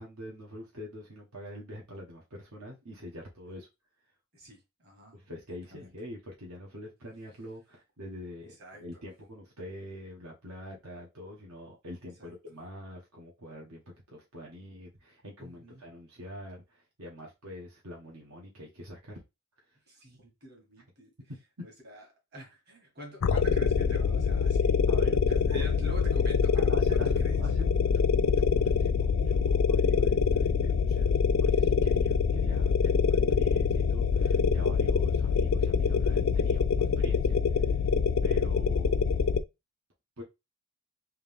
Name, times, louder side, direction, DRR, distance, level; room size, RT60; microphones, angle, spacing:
voice 1, 0.0-3.7 5.1-19.2 21.3-21.7 24.9-25.2 25.5-25.7 26.5-31.1 31.4-37.7 38.2-39.5 40.2-40.3, equal, 75° right, 1.2 m, -45 dB
voice 2, 4.3-5.2 5.7-5.9 8.6-9.0 12.2-12.3 15.4-15.8 19.9-21.1 21.6-22.0 22.3-24.8 25.2-27.4, equal, 45° right, 1.7 m, -46 dB
sound 1, 23.2-39.4, left 6 dB, 70° left, 0.4 m, -25 dB
3.7 x 2.9 x 3.5 m
head